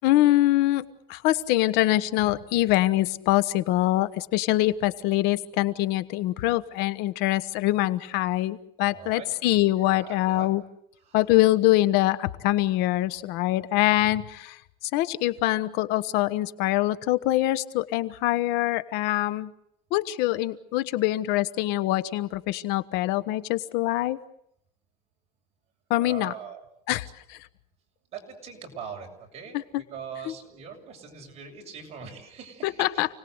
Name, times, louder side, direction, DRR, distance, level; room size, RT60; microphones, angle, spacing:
voice 1, 0.0-10.6 11.1-14.6 14.9-19.5 19.9-24.2 25.9-26.3 26.9-27.4 29.5-29.8 30.2-30.3 32.6-33.1, left 16 dB, 75° left, 14 dB, 1.2 m, -24 dB
voice 2, 8.9-9.3 9.8-10.5 11.1-11.2 26.0-26.6 28.1-33.0, right 6 dB, 40° right, 2 dB, 7.1 m, -41 dB
29.5 x 19.5 x 8.0 m, 0.76 s
cardioid pair, 135°, 17 cm